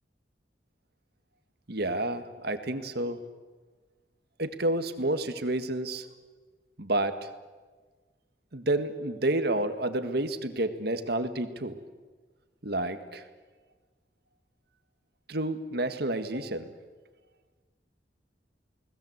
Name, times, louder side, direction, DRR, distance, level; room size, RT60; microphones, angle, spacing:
voice 1, 1.7-3.2 4.4-6.1 6.8-7.3 8.5-11.8 12.6-13.2 15.3-16.7, right 1 dB, 65° right, 9 dB, 1.8 m, -30 dB
29.0 x 20.0 x 8.1 m, 1.4 s
head